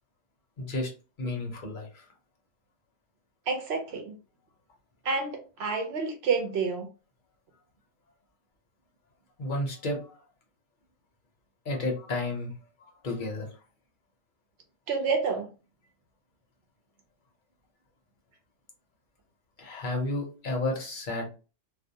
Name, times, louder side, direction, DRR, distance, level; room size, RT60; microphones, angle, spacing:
voice 1, 0.6-0.9 1.2-2.1 9.4-10.2 11.6-12.5 12.8-13.5 19.6-21.3, left 2 dB, 45° left, 0.8 m, -32 dB
voice 2, 3.5-4.2 5.0-6.9 14.9-15.5, right 4 dB, 65° right, 0.8 m, -29 dB
2.4 x 2.1 x 2.7 m
omnidirectional pair, 1.3 m